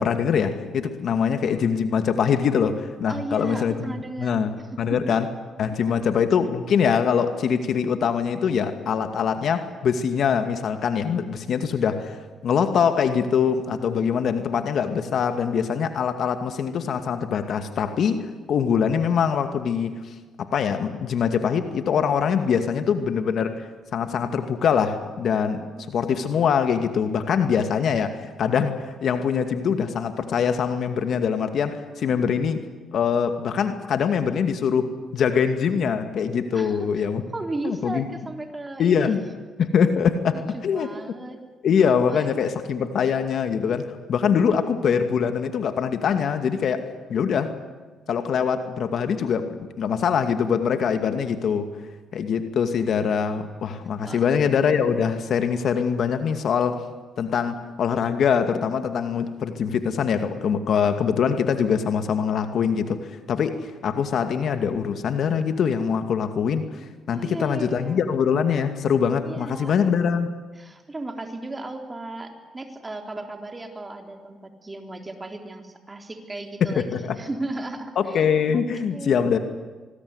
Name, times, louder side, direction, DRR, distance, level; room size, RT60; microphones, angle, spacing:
voice 1, 0.0-5.3 5.6-32.6 32.9-37.2 37.6-38.1 38.8-39.2 39.6-40.9 41.6-47.5 48.1-51.7 52.1-56.8 57.2-66.7 67.1-70.3 76.6-77.2 78.0-79.4, left 7 dB, 65° left, 8 dB, 2.3 m, -23 dB
voice 2, 3.1-4.4 4.7-5.0 5.9-6.2 25.6-25.8 36.5-36.9 37.3-39.1 40.3-41.4 42.1-42.4 54.0-54.2 67.1-68.0 69.2-69.7 70.6-78.2 78.5-78.6 78.9-79.4, right 2 dB, 20° right, 4 dB, 3.9 m, -35 dB
26.0 x 21.0 x 9.8 m, 1.3 s
cardioid pair, 90°, 0 cm